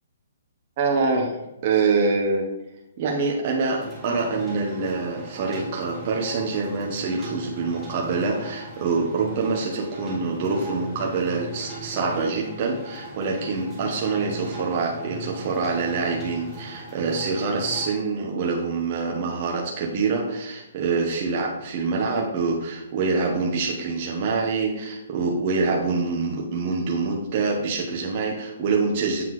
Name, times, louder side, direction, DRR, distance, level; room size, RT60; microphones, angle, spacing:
voice 1, 0.8-2.5 3.0-29.2, right 4 dB, 30° right, -1 dB, 0.8 m, -25 dB
sound 1, 3.8-17.9, right 1 dB, 5° right, 1.3 m, -39 dB
7.6 x 5.6 x 3.1 m, 0.90 s
hypercardioid pair, 175°, 0 cm